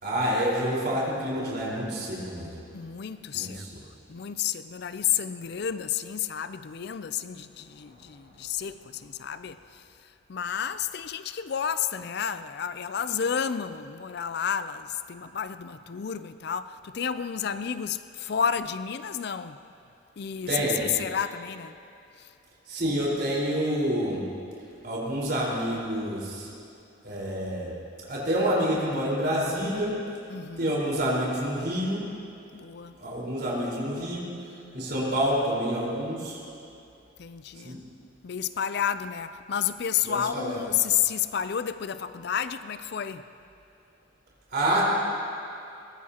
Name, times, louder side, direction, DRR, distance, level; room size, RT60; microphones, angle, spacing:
voice 1, 0.0-2.7 3.3-3.5 20.5-20.9 22.7-24.3 24.8-26.5 27.0-27.7 28.1-30.0 30.6-32.0 33.0-34.3 34.7-36.4 37.5-37.8 40.0-40.6 44.5-44.8, equal, 50° right, 4.4 m, -28 dB
voice 2, 2.7-3.7 4.1-9.8 10.3-19.6 20.2-21.7 22.2-22.3 30.3-30.7 32.5-33.0 37.2-37.8 38.2-43.2, left 8 dB, 55° left, 0.4 m, -31 dB
22.0 x 19.0 x 2.9 m
head